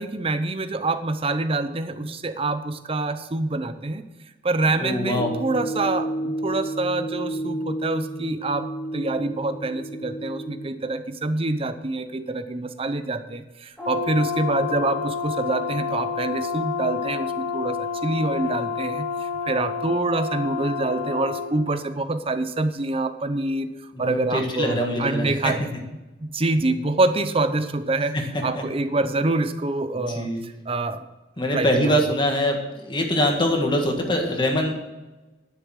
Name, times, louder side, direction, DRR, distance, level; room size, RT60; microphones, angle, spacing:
voice 1, 0.0-4.0 4.4-23.7 24.0-25.6 26.2-28.2 28.4-31.1 31.5-31.9, right 2 dB, 30° right, 11 dB, 0.8 m, -26 dB
voice 2, 4.7-5.3 23.9-25.5 28.1-28.2 28.6-28.7 30.1-30.4 31.4-34.7, equal, 25° left, 2 dB, 1.8 m, -23 dB
sound 1, 5.2-10.7, right 1 dB, 70° left, 1.1 m, -31 dB
Brass instrument, 13.8-21.5, left 5 dB, 5° left, 2.9 m, -29 dB
11.0 x 6.9 x 6.5 m, 1.1 s
head